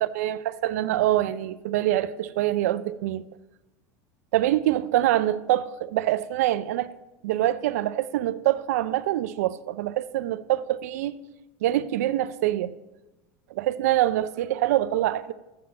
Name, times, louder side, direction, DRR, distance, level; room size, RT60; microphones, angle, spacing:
voice 1, 0.0-3.2 4.3-6.9 7.2-11.2 11.6-12.7 13.6-15.3, right 13 dB, 80° right, 0.5 m, -25 dB
7.7 x 7.2 x 8.4 m
supercardioid pair, 110°, 8 cm